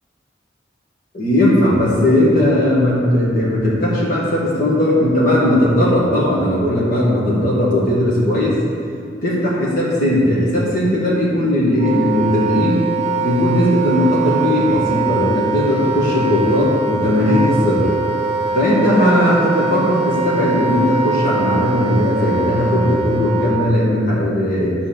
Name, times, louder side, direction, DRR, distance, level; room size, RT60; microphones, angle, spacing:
voice 1, 1.1-8.6 9.2-12.8 13.2-17.9 18.5-24.7, left 1 dB, 50° left, -7 dB, 1.5 m, -17 dB
Wind instrument woodwind instrument, 11.7-23.7, right 3 dB, 35° right, 0.5 m, -22 dB
9.9 x 3.6 x 6.9 m, 2.6 s
head